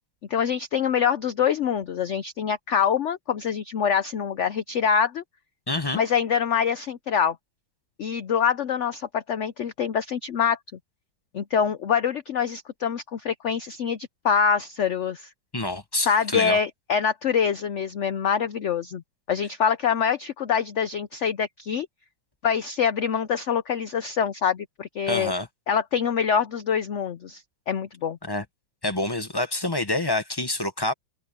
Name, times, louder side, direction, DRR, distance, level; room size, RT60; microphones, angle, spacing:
voice 1, 0.3-5.2 5.9-7.4 8.0-10.6 11.3-15.3 16.1-19.0 19.3-21.9 22.4-25.3 25.7-28.2, left 7 dB, 70° left, 0.6 m, -25 dB
voice 2, 5.7-6.0 15.5-16.6 25.1-25.5 28.2-28.4 28.8-30.9, left 2 dB, 15° left, 0.8 m, -27 dB
omnidirectional pair, 2.0 m